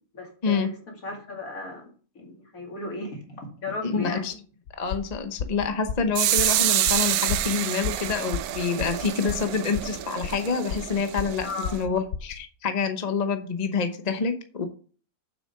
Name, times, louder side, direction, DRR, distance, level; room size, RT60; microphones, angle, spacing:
voice 1, 0.1-0.8 1.0-4.2 11.4-11.8, left 3 dB, 65° left, 1 dB, 2.8 m, -35 dB
voice 2, 3.8-4.3 4.8-14.7, left 5 dB, 30° left, 7 dB, 0.9 m, -27 dB
sound 1, 4.7-12.4, left 6 dB, 80° left, 1.3 m, -33 dB
sound 2, 6.1-11.8, right 12 dB, 80° right, 1.1 m, -27 dB
7.6 x 6.3 x 5.7 m, 0.42 s
omnidirectional pair, 1.6 m